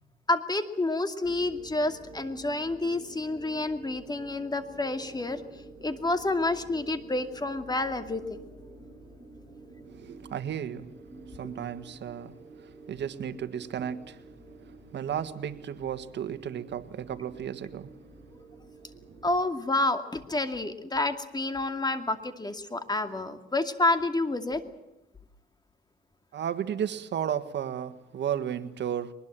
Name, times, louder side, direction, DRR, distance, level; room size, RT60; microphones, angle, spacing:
voice 1, 0.3-5.4 5.8-8.4 11.4-11.5 19.2-24.6, left 2 dB, 20° left, 8 dB, 2.5 m, -29 dB
sound 1, 1.2-19.3, right 2 dB, 15° right, 5.7 m, -49 dB
voice 2, 9.9-10.9 11.3-14.2 14.6-17.9 19.1-19.2 26.3-29.1, right 9 dB, 65° right, 11 dB, 1.6 m, -34 dB
23.0 x 20.5 x 7.6 m, 0.93 s
cardioid pair, 90°, 20 cm